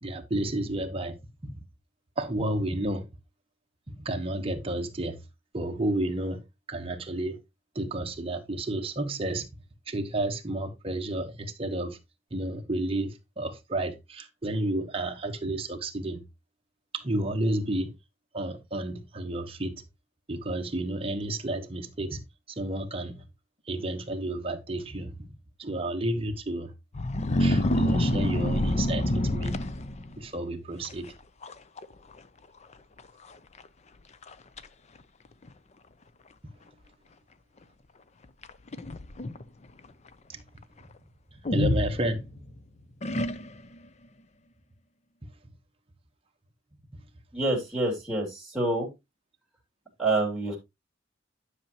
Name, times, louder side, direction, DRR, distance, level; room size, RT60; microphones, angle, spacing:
voice 1, 0.0-1.2 1.4-1.6 2.2-3.0 3.9-5.2 5.5-6.4 6.7-7.4 7.7-9.5 9.9-12.0 12.3-16.2 16.9-17.9 18.3-19.8 20.3-22.2 22.5-23.2 23.7-25.3 25.6-26.7 27.4-29.5 30.2-31.1 40.3-40.4 41.5-42.2, right 1 dB, 30° right, 1.2 m, -31 dB
sound 1, 26.9-30.2 30.8-31.1 31.4-31.8 32.1-32.2 33.0-33.1 33.6-33.7 34.2-34.7 35.5-35.6 38.4-39.4 41.4-42.5 43.0-43.7, left 1 dB, 35° left, 0.6 m, -27 dB
voice 2, 47.3-48.9 50.0-50.6, right 2 dB, ahead, 3.0 m, -27 dB
10.5 x 5.9 x 3.0 m
head